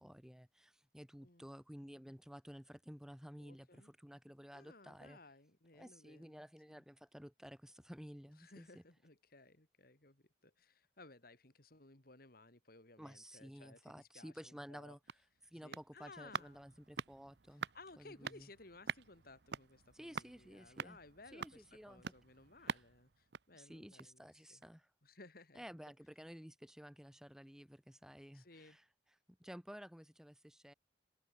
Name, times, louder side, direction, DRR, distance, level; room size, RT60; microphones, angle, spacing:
voice 1, 0.0-5.2 5.7-8.8 13.0-15.0 15.4-17.7 18.0-18.5 19.9-21.0 21.3-22.1 22.6-22.8 23.5-24.9 25.5-28.8 29.4-30.7, equal, 5° right, 1.5 m, -53 dB
voice 2, 3.4-3.9 4.5-6.8 8.4-15.0 15.6-16.6 17.7-24.6 25.0-25.6 28.3-28.8, left 2 dB, 55° left, 3.0 m, -60 dB
sound 1, 14.7-24.3 24.6-24.7, right 6 dB, 65° right, 0.8 m, -48 dB
head